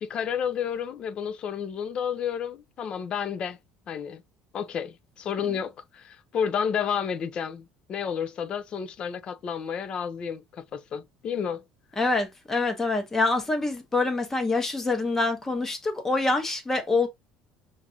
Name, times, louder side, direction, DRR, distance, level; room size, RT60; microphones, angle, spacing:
voice 1, 0.0-3.6 3.9-4.2 4.5-11.6, left 7 dB, 35° left, 0.4 m, -31 dB
voice 2, 12.0-17.1, left 3 dB, 10° left, 0.9 m, -25 dB
5.9 x 2.5 x 2.7 m
cardioid pair, 165°, 3 cm